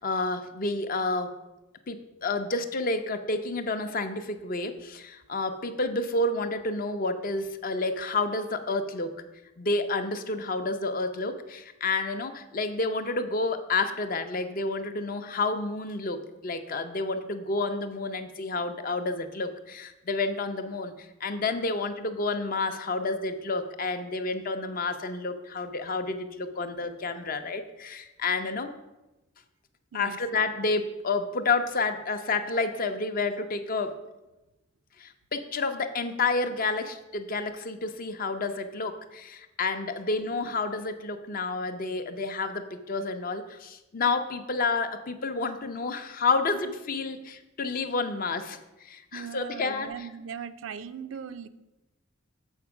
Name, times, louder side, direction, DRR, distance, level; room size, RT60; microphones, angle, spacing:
voice 1, 0.0-1.3 1.9-9.2 9.6-20.9 21.2-28.7 29.9-34.0 35.0-50.1, left 3 dB, 45° left, 8 dB, 0.6 m, -30 dB
voice 2, 49.1-51.5, right 7 dB, 75° right, 12 dB, 0.4 m, -39 dB
7.2 x 4.4 x 5.9 m, 1.0 s
head